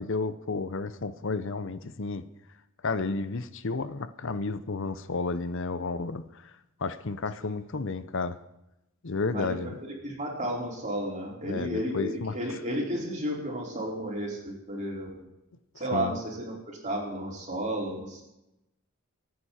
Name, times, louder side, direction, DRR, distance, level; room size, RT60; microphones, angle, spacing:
voice 1, 0.0-2.2 2.8-6.5 6.8-8.4 9.0-9.8 11.4-12.6 15.9-16.2, left 3 dB, 60° left, 13 dB, 0.7 m, -32 dB
voice 2, 9.3-15.3 15.8-18.2, right 1 dB, 35° right, -2 dB, 4.9 m, -33 dB
26.0 x 9.6 x 4.4 m, 0.89 s
head